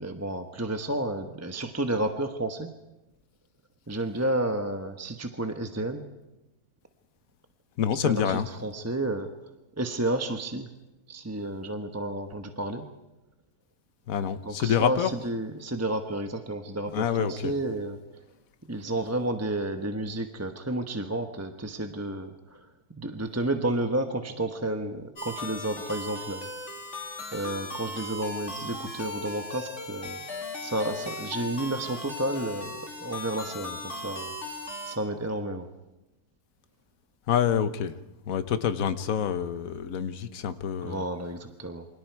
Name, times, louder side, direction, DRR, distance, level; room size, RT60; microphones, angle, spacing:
voice 1, 0.0-2.7 3.9-6.0 8.0-9.3 9.8-10.7 11.1-12.8 14.4-18.0 18.7-22.6 23.0-26.5 27.3-30.2 30.6-32.7 33.0-34.3 34.8-35.7 40.8-41.9, right 1 dB, 10° right, 6 dB, 1.0 m, -31 dB
voice 2, 7.8-8.5 14.1-15.1 16.9-17.5 37.3-37.9 38.3-41.0, left 8 dB, 60° left, 10 dB, 1.4 m, -27 dB
sound 1, 25.2-34.9, left 2 dB, 45° left, 3.0 m, -37 dB
28.5 x 25.5 x 4.7 m, 0.98 s
omnidirectional pair, 1.7 m